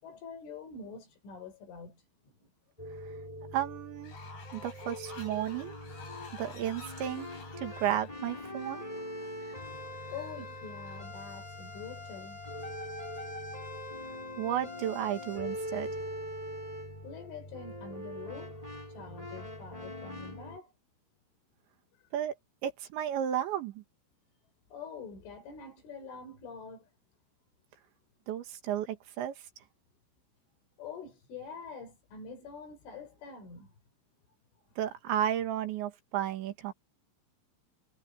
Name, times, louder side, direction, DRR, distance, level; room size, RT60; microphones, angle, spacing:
voice 1, 0.0-2.5 4.6-4.7 10.1-12.5 16.5-18.6 18.9-20.7 24.7-26.9 30.8-33.7, left 5 dB, 85° left, 8.1 m, -46 dB
sound 1, 2.8-20.6, left 1 dB, 10° left, 3.7 m, -42 dB
voice 2, 3.5-4.2 4.5-5.8 6.3-7.3 7.6-8.9 14.4-15.9 22.1-22.3 22.6-23.8 28.3-29.3 34.8-36.7, right 11 dB, 70° right, 4.2 m, -33 dB
Fowl, 4.0-11.0, left 4 dB, 65° left, 9.1 m, -51 dB
omnidirectional pair, 5.4 m